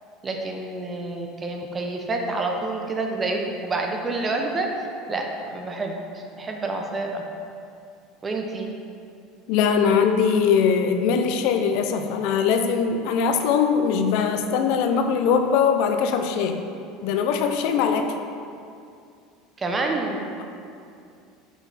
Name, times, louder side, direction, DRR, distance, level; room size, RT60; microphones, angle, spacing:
voice 1, 0.2-4.7 5.1-7.2 8.2-8.7 19.6-20.4, right 2 dB, 25° right, 2 dB, 0.7 m, -28 dB
voice 2, 9.5-16.6 17.0-18.1, left 6 dB, 65° left, 6 dB, 0.5 m, -21 dB
5.8 x 4.0 x 4.1 m, 2.5 s
supercardioid pair, 95°, 0 cm